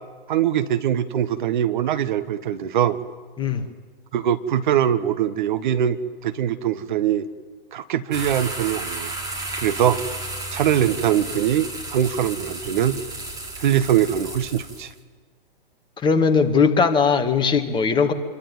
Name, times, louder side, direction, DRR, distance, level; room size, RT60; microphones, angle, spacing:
voice 1, 0.3-3.0 4.1-7.3 7.7-9.1 9.6-10.0 10.5-13.0 13.6-14.9, right 10 dB, 55° right, 11 dB, 1.5 m, -22 dB
sound 1, 8.1-14.9, right 2 dB, 10° right, 4.9 m, -33 dB
voice 2, 16.0-18.1, left 5 dB, 15° left, 5 dB, 2.1 m, -19 dB
27.0 x 23.0 x 9.2 m, 1.5 s
figure-of-eight pair, 115°, 29 cm